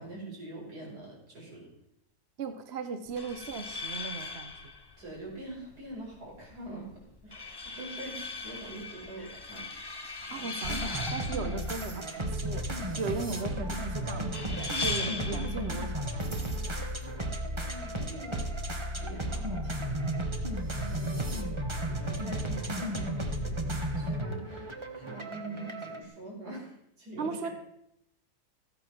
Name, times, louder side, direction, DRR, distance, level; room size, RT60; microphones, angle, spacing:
voice 1, 0.0-1.7 5.0-10.5 17.3-18.5 19.0-20.0 20.7-24.7 25.0-27.5, right 2 dB, 80° right, -3 dB, 5.7 m, -44 dB
voice 2, 2.4-4.7 10.2-12.6 13.0-16.9 27.2-27.5, right 4 dB, 45° right, 7 dB, 1.1 m, -38 dB
sound 1, 3.1-18.1, left 3 dB, 35° left, 0.4 m, -40 dB
sound 2, 10.6-26.0, right 1 dB, 20° right, 1.2 m, -34 dB
15.0 x 8.7 x 6.1 m, 0.78 s
omnidirectional pair, 1.7 m